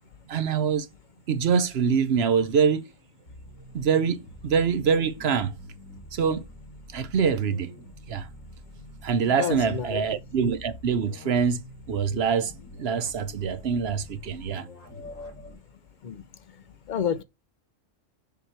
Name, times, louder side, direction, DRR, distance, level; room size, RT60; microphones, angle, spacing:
voice 1, 0.3-0.9 1.3-2.9 3.7-5.5 6.1-6.4 6.9-7.7 8.1-8.3 9.0-11.6 11.9-12.5 12.8-14.7, right 6 dB, 60° right, 0.9 m, -24 dB
sound 1, 3.3-15.6, left 1 dB, 85° left, 2.8 m, -46 dB
voice 2, 9.4-10.0 14.9-15.5 16.0-16.2 16.9-17.2, left 7 dB, 60° left, 0.5 m, -30 dB
7.0 x 3.1 x 4.4 m
omnidirectional pair, 1.3 m